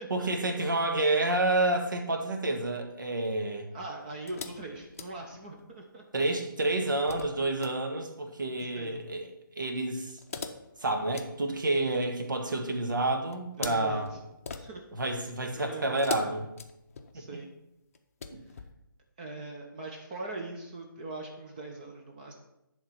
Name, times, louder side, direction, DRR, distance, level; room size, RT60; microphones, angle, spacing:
voice 1, 0.1-3.7 6.1-9.3 9.6-10.2 10.8-14.1 14.9-16.5 17.1-17.2 18.3-18.4, right 2 dB, 60° right, 4 dB, 1.6 m, -29 dB
voice 2, 3.7-6.0 8.7-9.0 13.6-14.2 14.6-14.9 15.5-16.4 17.1-17.5 19.2-22.3, right 2 dB, 20° right, 1 dB, 0.8 m, -41 dB
sound 1, 4.2-5.7 6.6-7.8 10.1-12.3 13.3-15.1 16.0-17.3 17.9-18.7, left 5 dB, 40° left, 0.7 m, -42 dB
10.5 x 3.8 x 5.8 m, 0.87 s
figure-of-eight pair, 155°, 12 cm